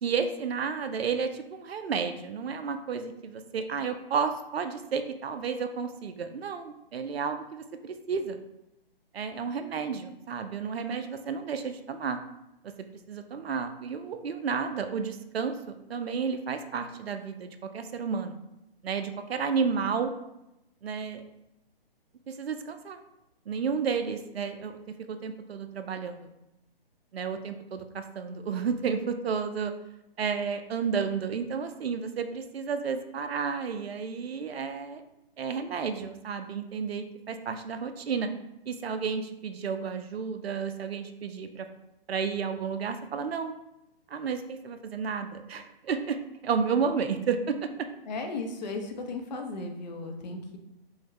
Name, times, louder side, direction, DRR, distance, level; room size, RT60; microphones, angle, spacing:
voice 1, 0.0-8.4 9.1-12.2 12.6-12.7 13.1-15.6 15.9-18.4 18.8-20.1 20.8-21.2 22.3-23.0 23.5-24.7 25.1-26.3 27.1-29.7 30.2-35.0 35.4-38.3 38.7-41.7 42.1-43.5 44.1-46.2 46.4-47.7, right 6 dB, 85° right, 8 dB, 0.5 m, -31 dB
voice 2, 48.0-50.6, left 3 dB, 45° left, 4 dB, 0.6 m, -35 dB
4.7 x 2.2 x 3.1 m, 0.89 s
hypercardioid pair, 145°, 30 cm